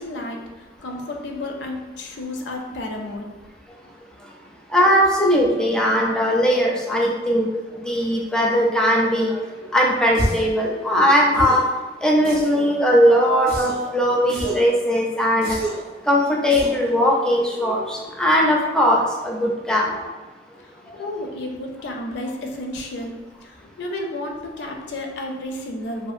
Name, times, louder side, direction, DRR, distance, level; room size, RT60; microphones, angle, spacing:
voice 1, 0.0-3.3 3.8-3.9 4.4-4.5 8.0-8.1 19.5-19.6 20.6-23.1 23.4-26.1, left 1 dB, 65° left, 2 dB, 0.4 m, -32 dB
voice 2, 4.7-7.5 7.8-9.4 9.7-11.6 12.0-15.6 16.1-20.1, equal, 5° left, -2 dB, 0.4 m, -19 dB
sound 1, 10.1-10.5 11.3-11.7 12.2-12.7 13.5-13.9 14.3-14.7 15.4-15.9 16.5-16.9, right 1 dB, 55° right, 0.6 m, -29 dB
2.6 x 2.4 x 2.4 m, 1.2 s
head